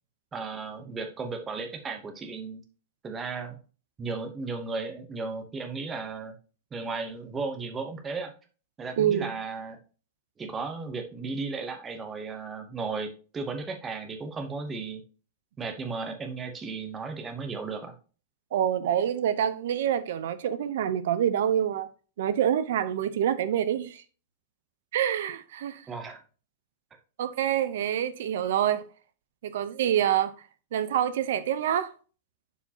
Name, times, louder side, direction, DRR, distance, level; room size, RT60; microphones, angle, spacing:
voice 1, 0.3-2.6 3.0-3.6 4.0-6.3 6.7-8.3 8.8-9.8 10.4-15.0 15.6-18.0 25.9-26.2, right 4 dB, 10° right, 0.9 m, -35 dB
voice 2, 9.0-9.3 18.5-21.9 22.2-24.0 24.9-25.8 27.2-28.8 29.4-30.3 30.7-31.9, right 10 dB, 60° right, 0.7 m, -26 dB
11.0 x 4.5 x 2.8 m
supercardioid pair, 175°, 0 cm